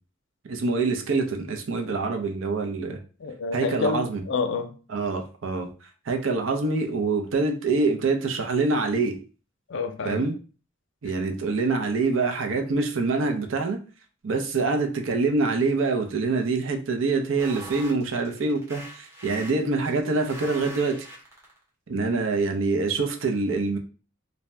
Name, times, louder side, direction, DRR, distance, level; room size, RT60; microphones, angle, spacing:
voice 1, 0.4-3.0 3.5-4.2 4.9-5.7 6.1-9.2 10.0-10.3 11.0-13.8 14.2-21.0 21.9-23.8, right 3 dB, 70° right, 4 dB, 0.5 m, -25 dB
voice 2, 3.2-4.7 9.7-10.2 22.1-22.2, left 4 dB, 65° left, 7 dB, 0.4 m, -28 dB
sound 1, 17.4-21.6, right 1 dB, 15° right, 0.8 m, -42 dB
2.6 x 2.1 x 3.2 m, 0.37 s
head